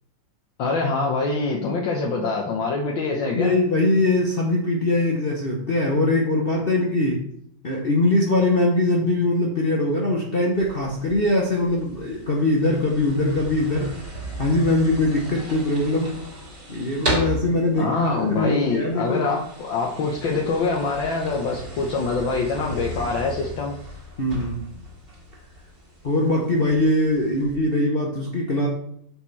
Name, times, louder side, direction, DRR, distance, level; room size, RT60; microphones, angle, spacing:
voice 1, 0.6-3.5 17.8-23.8, left 3 dB, 70° left, -1 dB, 1.7 m, -25 dB
voice 2, 3.1-7.2 7.6-14.0 14.4-16.2 16.7-19.3 24.2-24.7 26.0-28.7, left 2 dB, 40° left, -2 dB, 0.8 m, -22 dB
sound 1, 10.5-27.6, right 1 dB, 45° right, 2.9 m, -36 dB
6.5 x 6.0 x 4.1 m, 0.71 s
omnidirectional pair, 2.2 m